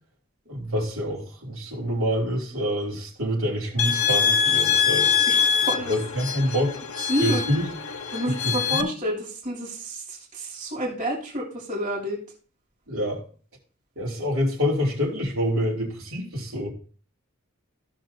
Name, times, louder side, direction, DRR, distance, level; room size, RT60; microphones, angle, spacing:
voice 1, 0.5-5.1 5.9-6.8 7.2-7.6 8.3-8.9 12.9-13.2 13.9-16.7, equal, 75° right, 3.4 m, -26 dB
sound 1, 3.8-8.8, left 7 dB, 75° left, 1.1 m, -24 dB
voice 2, 5.3-6.0 7.1-7.4 8.1-9.2 9.4-12.2, equal, 35° right, 3.1 m, -29 dB
16.0 x 6.3 x 2.8 m
head